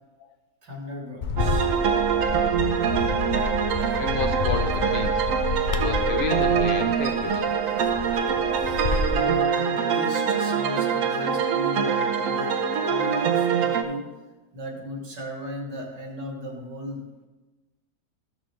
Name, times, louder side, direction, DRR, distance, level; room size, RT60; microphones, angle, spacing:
voice 1, 0.6-1.7 9.1-14.1 14.5-17.0, equal, 80° right, -1 dB, 2.6 m, -36 dB
Bird, 1.2-9.2, left 3 dB, 85° left, 0.4 m, -29 dB
sound 1, 1.4-13.8, right 6 dB, 60° right, 1.0 m, -24 dB
voice 2, 3.9-5.2 5.7-7.5, left 5 dB, 45° left, 6 dB, 0.7 m, -31 dB
14.0 x 6.2 x 3.3 m, 1.2 s
omnidirectional pair, 1.8 m